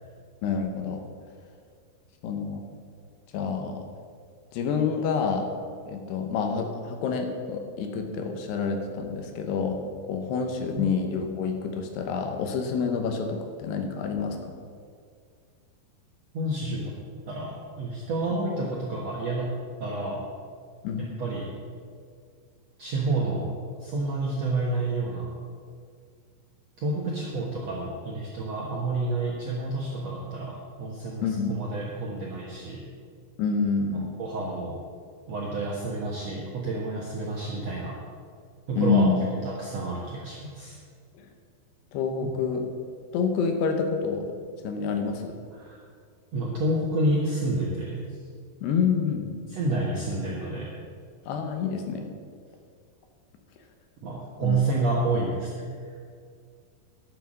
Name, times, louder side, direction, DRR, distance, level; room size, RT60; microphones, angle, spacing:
voice 1, 0.4-1.0 2.2-2.6 3.3-3.8 4.5-5.5 5.9-14.6 20.8-21.1 31.2-31.5 33.4-34.1 38.7-39.3 41.2-41.3 41.9-42.6 43.1-44.3 44.6-45.4 48.6-49.3 51.3-52.1 54.4-54.6, left 5 dB, 75° left, 5 dB, 3.0 m, -28 dB
voice 2, 16.3-16.9 17.3-20.3 21.0-21.5 22.8-23.5 23.8-25.3 26.8-32.9 33.9-34.8 35.3-38.0 38.7-40.8 45.5-45.8 46.3-48.0 49.5-50.7 54.0-55.9, right 2 dB, 65° right, -4 dB, 1.6 m, -29 dB
12.0 x 8.2 x 6.4 m, 2.1 s
omnidirectional pair, 5.0 m